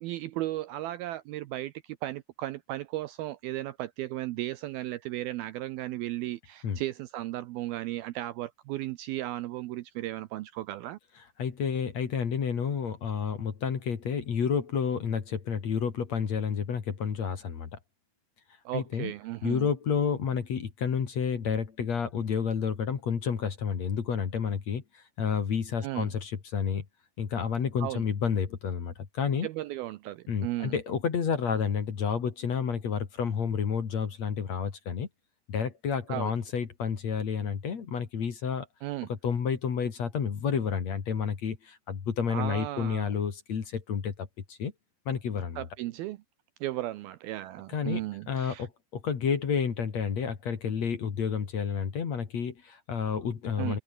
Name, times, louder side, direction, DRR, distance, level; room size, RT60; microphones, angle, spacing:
voice 1, 0.0-11.0 18.7-19.7 25.8-26.1 27.8-28.0 29.4-30.7 36.1-36.3 38.8-39.1 42.3-43.1 45.6-46.2 46.6-48.7 53.6-53.8, right 15 dB, 80° right, 2.3 m, -35 dB
voice 2, 11.4-17.7 18.7-19.1 19.4-26.8 27.2-29.5 30.3-35.1 35.5-38.7 39.1-44.7 45.1-45.6 47.7-48.0 48.3-53.8, left 6 dB, 45° left, 3.1 m, -30 dB
omnidirectional pair, 5.0 m